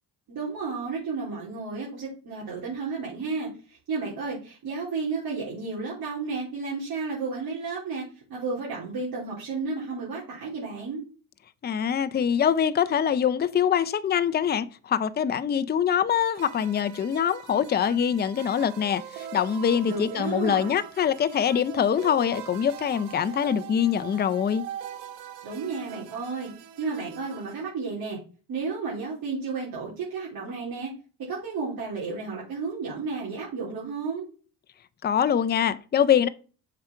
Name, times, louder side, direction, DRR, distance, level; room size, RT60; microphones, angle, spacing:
voice 1, 0.3-8.0 8.3-11.0 19.9-20.7 25.4-26.5 26.8-28.2 28.5-30.9 31.3-34.3, right 4 dB, 60° right, 3.7 m, -32 dB
voice 2, 11.6-24.6 35.0-36.3, left 8 dB, 25° left, 0.6 m, -24 dB
sound 1, 16.3-27.6, right 10 dB, 85° right, 1.3 m, -42 dB
7.4 x 5.9 x 4.5 m
cardioid pair, 115°, 39 cm